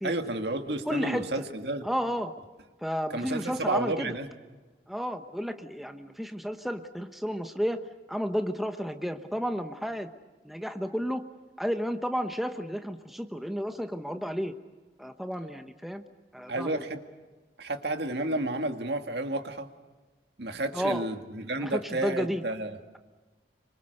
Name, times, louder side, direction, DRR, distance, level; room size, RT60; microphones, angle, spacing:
voice 1, 0.0-1.9 3.1-4.3 16.5-17.0 17.6-19.7 20.4-22.8, right 2 dB, 75° right, 6 dB, 2.0 m, -31 dB
voice 2, 0.9-1.3 1.8-2.3 2.8-4.1 4.9-7.8 8.1-10.1 10.4-11.2 11.6-14.5 15.0-16.0 16.3-16.8 20.7-21.0 21.6-22.4, equal, ahead, 7 dB, 1.0 m, -32 dB
27.0 x 25.0 x 6.6 m, 1.3 s
head